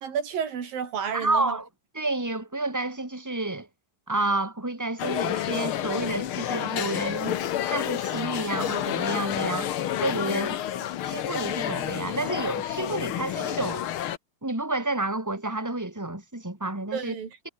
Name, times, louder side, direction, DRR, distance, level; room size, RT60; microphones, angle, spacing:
voice 1, 0.0-1.6 10.3-10.4 16.9-17.3, right 7 dB, 85° right, 5.0 m, -31 dB
voice 2, 1.1-1.7 1.9-3.7 4.1-9.7 10.0-10.6 11.0-13.8 14.4-17.2, right 2 dB, 5° right, 4.6 m, -30 dB
sound 1, 5.0-14.2, left 11 dB, 85° left, 1.2 m, -29 dB
omnidirectional pair, 4.0 m